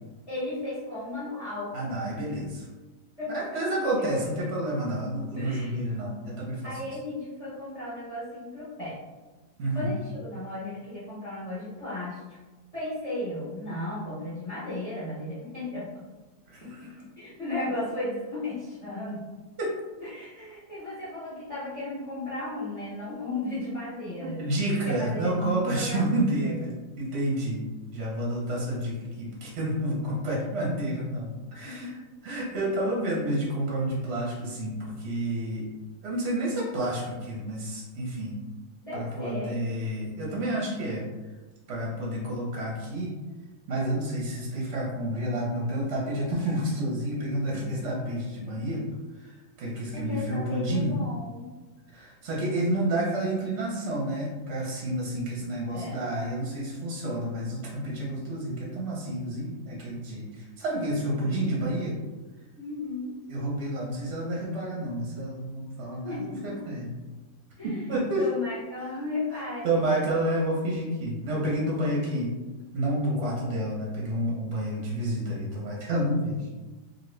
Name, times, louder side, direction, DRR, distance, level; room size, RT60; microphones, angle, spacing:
voice 1, 0.3-1.7 3.2-3.6 5.4-5.8 6.6-9.0 9.7-12.4 12.7-15.9 16.6-19.2 20.0-24.4 24.8-26.5 31.6-31.9 38.8-39.6 49.9-51.5 55.7-56.0 61.1-61.5 62.6-63.2 66.0-66.6 67.6-67.9 68.2-69.8, left 2 dB, 35° left, -10 dB, 0.6 m, -35 dB
voice 2, 1.7-2.6 3.3-6.8 9.6-9.9 16.5-17.0 19.6-19.8 24.2-27.6 27.9-32.0 32.2-35.7 36.0-38.4 38.9-41.0 41.7-43.1 43.7-48.8 49.2-49.3 49.6-51.0 51.9-61.9 63.3-66.9 67.6-68.3 68.9-69.0 69.3-72.3 72.7-76.5, right 1 dB, 55° right, -4 dB, 0.8 m, -29 dB
2.9 x 2.5 x 3.1 m, 1.2 s
omnidirectional pair, 1.8 m